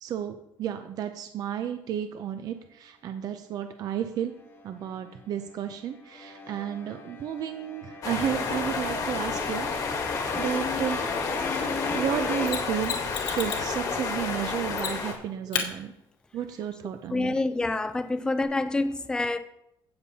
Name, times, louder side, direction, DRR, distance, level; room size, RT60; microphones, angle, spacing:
voice 1, 0.0-4.3 4.6-11.0 11.9-12.9 13.3-15.9 16.3-17.3, right 9 dB, 45° right, 0.5 m, -32 dB
sound 1, 4.2-5.0 5.3-12.5, left 3 dB, 25° left, 1.1 m, -36 dB
sound 2, 8.0-15.1, left 5 dB, 40° left, 1.5 m, -30 dB
Mechanisms, 12.5-13.7 14.8-15.2 15.5-15.7 18.4-18.5, left 8 dB, 75° left, 1.6 m, -32 dB
voice 2, 17.1-19.4, left 2 dB, 10° left, 0.4 m, -27 dB
16.5 x 7.0 x 2.8 m
cardioid pair, 180°, 9 cm